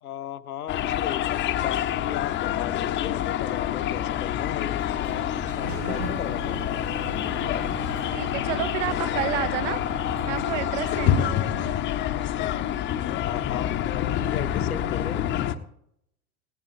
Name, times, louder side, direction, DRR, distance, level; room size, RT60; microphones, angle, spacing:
voice 1, 0.0-6.9 12.4-12.5 13.0-15.2, left 10 dB, 75° left, 10 dB, 1.1 m, -36 dB
sound 1, 0.7-15.5, left 11 dB, 25° left, 0.8 m, -27 dB
Sliding door, 4.6-12.0, right 6 dB, 90° right, 0.9 m, -40 dB
voice 2, 8.1-9.8 10.3-11.8, right 14 dB, 55° right, 16 dB, 0.9 m, -30 dB
19.0 x 16.5 x 2.7 m, 0.76 s
figure-of-eight pair, 95°, 45 cm